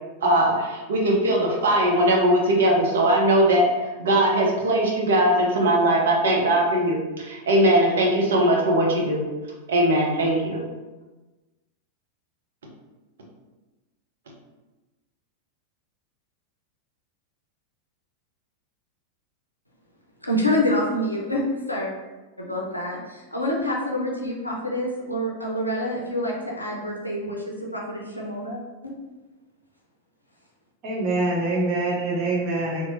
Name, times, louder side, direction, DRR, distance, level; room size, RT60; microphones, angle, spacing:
voice 1, 0.2-3.7 4.0-9.3 9.7-10.7, right 1 dB, 65° right, -2 dB, 0.6 m, -20 dB
voice 2, 20.2-21.9 22.4-27.4 27.7-28.9, left 1 dB, 85° left, -2 dB, 0.4 m, -27 dB
voice 3, 30.8-32.8, right 2 dB, 40° right, -4 dB, 0.9 m, -24 dB
2.9 x 2.0 x 2.9 m, 1.2 s
figure-of-eight pair, 90°, 0 cm